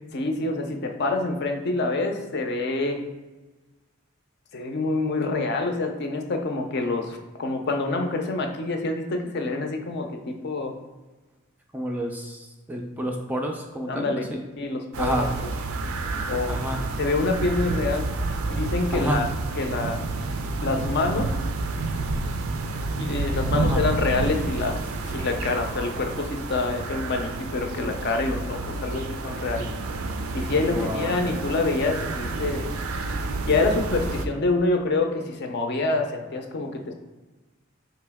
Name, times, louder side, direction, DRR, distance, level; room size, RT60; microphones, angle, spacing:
voice 1, 0.1-3.0 4.5-10.7 13.9-14.3 14.6-15.3 16.3-16.6 17.0-18.1 18.5-19.3 19.6-20.0 20.6-21.3 22.9-29.7 30.3-32.7 33.5-36.9, left 3 dB, 50° left, 4 dB, 0.5 m, -26 dB
voice 2, 11.7-14.5 15.0-15.3 16.5-16.8 18.9-19.2 23.5-23.8 30.6-31.2, right 1 dB, 10° right, 1 dB, 0.3 m, -29 dB
sound 1, 14.9-34.3, right 3 dB, 80° right, 0.4 m, -29 dB
4.3 x 2.9 x 3.4 m, 1.2 s
head